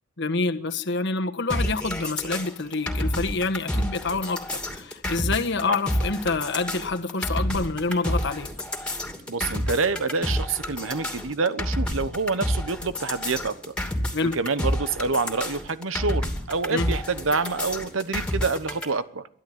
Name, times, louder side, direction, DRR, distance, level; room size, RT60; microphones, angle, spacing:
voice 1, 0.2-4.4 4.7-8.5 14.1-14.4 16.7-16.9, left 3 dB, 60° left, 6 dB, 1.4 m, -27 dB
sound 1, 1.5-18.9, left 1 dB, 5° left, 2.6 m, -29 dB
voice 2, 9.3-13.7 14.2-19.3, right 4 dB, 75° right, 13 dB, 1.0 m, -27 dB
23.0 x 13.5 x 9.3 m, 0.73 s
head